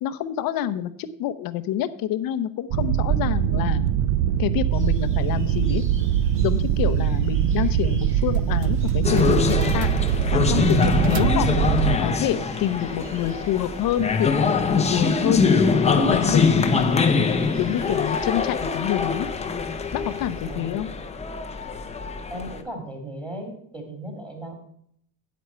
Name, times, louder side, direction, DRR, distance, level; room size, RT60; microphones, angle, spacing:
voice 1, 0.0-3.8 4.4-5.8 6.4-11.5 12.0-15.5 15.9-16.8 17.6-19.3 19.9-20.9, left 11 dB, 45° left, 12 dB, 0.9 m, -27 dB
sound 1, 2.7-12.0, right 10 dB, 60° right, 0.7 m, -22 dB
sound 2, 4.7-20.6, right 2 dB, 25° right, 2.0 m, -45 dB
sound 3, 9.0-22.6, left 5 dB, 15° left, 0.8 m, -23 dB
voice 2, 22.3-24.5, right 1 dB, 10° right, 2 dB, 2.4 m, -36 dB
9.4 x 8.3 x 4.5 m, 0.67 s
cardioid pair, 130°, 46 cm